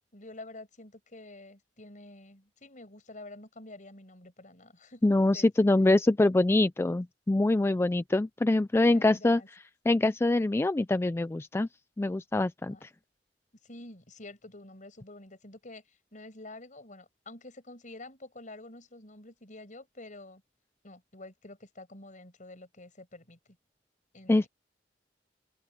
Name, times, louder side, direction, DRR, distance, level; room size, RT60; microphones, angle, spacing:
voice 1, 0.1-5.1 5.3-5.5 8.8-9.5 12.7-12.9 13.6-20.4 20.8-23.4 24.1-24.5, left 2 dB, 45° left, 5.8 m, -48 dB
voice 2, 5.0-9.4 9.9-11.7 12.0-12.9 24.3-24.5, left 2 dB, 15° left, 0.3 m, -24 dB
head